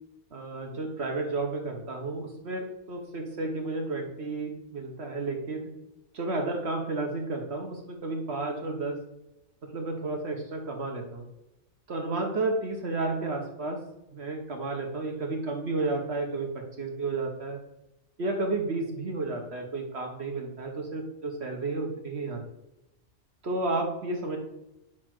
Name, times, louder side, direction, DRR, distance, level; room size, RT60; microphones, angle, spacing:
voice 1, 0.3-5.7 6.1-9.0 9.6-11.3 11.9-13.8 14.1-17.6 18.2-22.4 23.4-24.4, right 2 dB, 60° right, 2 dB, 1.2 m, -32 dB
5.2 x 4.4 x 6.0 m, 0.91 s
omnidirectional pair, 1.3 m